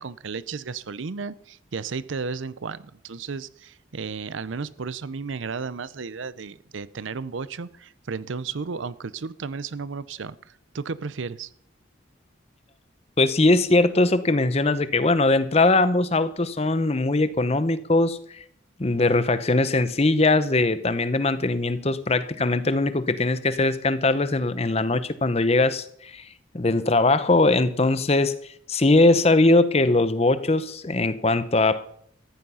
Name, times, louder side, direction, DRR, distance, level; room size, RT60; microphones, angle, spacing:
voice 1, 0.0-11.5, right 5 dB, 75° right, 0.6 m, -33 dB
voice 2, 13.2-18.4 18.8-26.2 26.5-28.4 28.7-31.9, left 2 dB, 30° left, 0.7 m, -21 dB
14.0 x 10.5 x 5.6 m
head